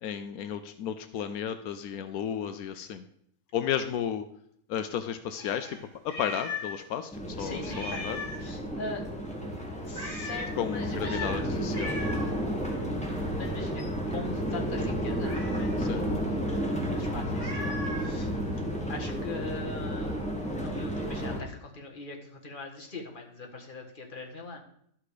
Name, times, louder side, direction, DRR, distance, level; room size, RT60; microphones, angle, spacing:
voice 1, 0.0-3.0 3.5-4.3 4.7-5.8 6.0-8.2 10.5-11.9 15.8-16.0, left 9 dB, 85° left, 10 dB, 1.1 m, -33 dB
Meow, 5.3-6.9 7.1-7.2 7.6-8.5 9.9-10.5 11.0-11.4 11.7-12.4 15.2-15.8 17.4-18.1, left 2 dB, 70° left, 3.4 m, -38 dB
sound 1, 7.1-21.4, equal, 5° left, 1.7 m, -32 dB
voice 2, 7.4-9.0 9.8-11.5 13.3-13.8 14.1-16.2 16.8-18.3 18.9-20.1 20.6-24.6, left 3 dB, 35° left, 1 dB, 1.7 m, -41 dB
12.0 x 6.0 x 4.9 m, 0.68 s
omnidirectional pair, 1.5 m